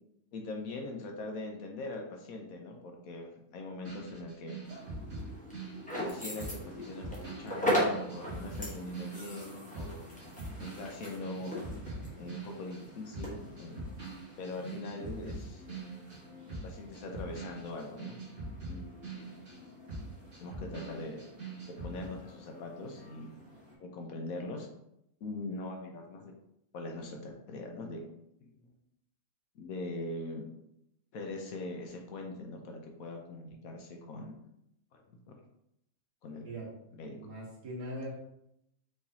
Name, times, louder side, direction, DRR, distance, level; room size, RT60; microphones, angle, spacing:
voice 1, 0.3-4.6 5.9-10.1 10.6-11.6 12.2-13.9 14.4-15.7 16.5-18.1 18.7-19.3 20.4-21.2 21.7-23.3 23.8-24.7 25.2-26.3 26.7-28.0 28.4-28.7 29.5-30.4 31.1-34.3 34.9-35.0 35.3-35.4 36.2-36.5 37.0-37.2, left 2 dB, 65° left, 2 dB, 1.0 m, -42 dB
sound 1, 3.8-12.9 13.1-22.1, right 3 dB, 50° right, 1.7 m, -43 dB
sound 2, 4.6-23.8, equal, 5° left, 0.8 m, -40 dB
voice 2, 37.2-38.1, equal, 80° right, -5 dB, 2.1 m, -40 dB
4.8 x 3.6 x 2.7 m, 0.81 s
omnidirectional pair, 1.7 m